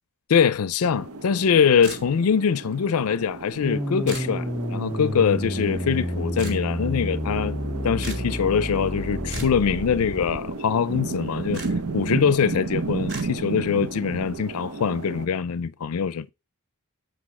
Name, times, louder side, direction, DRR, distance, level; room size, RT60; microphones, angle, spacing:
voice 1, 0.3-7.6 7.8-11.6 11.9-16.3, left 7 dB, 85° left, 0.5 m, -23 dB
sound 1, 0.8-15.3, right 3 dB, 90° right, 0.8 m, -34 dB
sound 2, 1.8-2.4 4.1-4.3 6.4-6.6 8.0-8.3 9.3-9.6 11.5-11.7 13.1-13.3, right 1 dB, 55° right, 2.7 m, -36 dB
sound 3, 3.6-10.4, equal, ahead, 0.3 m, -30 dB
8.4 x 5.3 x 4.2 m
head